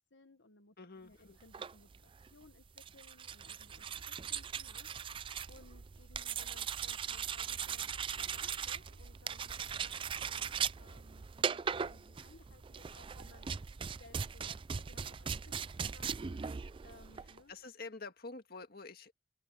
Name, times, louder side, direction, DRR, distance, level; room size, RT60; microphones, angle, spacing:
voice 1, 0.1-0.7 1.0-4.9 5.5-13.5 13.8-16.4 16.8-17.5, left 2 dB, 75° left, 1.6 m, -61 dB
voice 2, 0.8-1.4 17.5-19.1, left 3 dB, 55° left, 1.9 m, -48 dB
sound 1, 1.3-17.1, right 1 dB, 55° right, 6.9 m, -74 dB
sound 2, 1.4-17.4, right 7 dB, 25° right, 0.4 m, -39 dB
open air
head